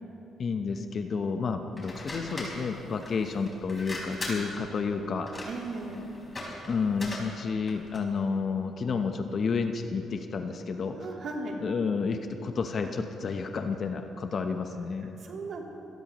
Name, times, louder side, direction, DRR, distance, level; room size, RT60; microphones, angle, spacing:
voice 1, 0.4-5.3 6.7-11.0 11.6-15.2, left 5 dB, 50° left, 6 dB, 1.0 m, -30 dB
sound 1, 1.7-8.1, left 1 dB, 25° left, 4.5 m, -40 dB
voice 2, 5.5-6.0 10.9-11.6 15.2-15.6, right 3 dB, 60° right, -1 dB, 3.2 m, -36 dB
26.0 x 17.5 x 3.1 m, 3.0 s
cardioid pair, 90°, 0 cm